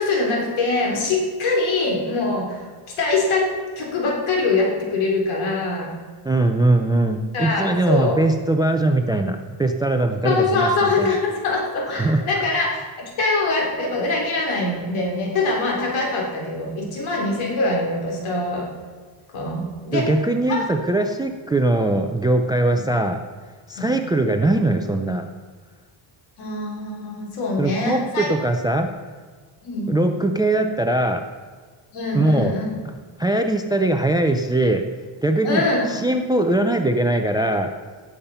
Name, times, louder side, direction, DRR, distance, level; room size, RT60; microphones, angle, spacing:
voice 1, 0.0-2.6 3.0-5.9 7.3-8.2 10.2-18.7 19.3-20.1 20.5-20.9 23.8-23.9 26.4-28.3 29.6-29.9 31.9-32.7 35.4-36.0, left 3 dB, 80° left, -1 dB, 3.7 m, -23 dB
voice 2, 6.2-11.2 11.9-12.2 19.9-23.2 23.7-25.2 27.6-28.9 29.9-31.2 32.1-32.5 33.2-34.8 35.2-37.7, right 2 dB, 10° right, 6 dB, 0.3 m, -21 dB
17.0 x 7.2 x 5.5 m, 1.5 s
cardioid pair, 180°, 48 cm